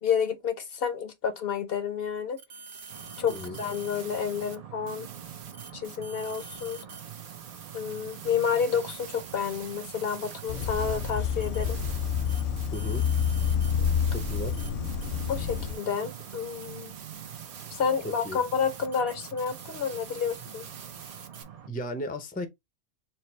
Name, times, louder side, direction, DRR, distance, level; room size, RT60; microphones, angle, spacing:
voice 1, 0.0-2.4 3.2-5.1 5.7-6.8 7.7-11.8 15.3-16.9 17.7-20.7, left 7 dB, 65° left, 0.9 m, -30 dB
sound 1, 2.4-4.6 4.9-21.4, right 6 dB, 80° right, 1.0 m, -45 dB
sound 2, 2.9-21.7, right 9 dB, 45° right, 0.5 m, -45 dB
sound 3, 10.5-15.7, left 8 dB, 90° left, 0.9 m, -28 dB
voice 2, 12.7-13.0 14.1-14.6 18.2-18.4 21.7-22.5, equal, 10° left, 0.5 m, -35 dB
4.5 x 2.0 x 4.3 m
omnidirectional pair, 1.1 m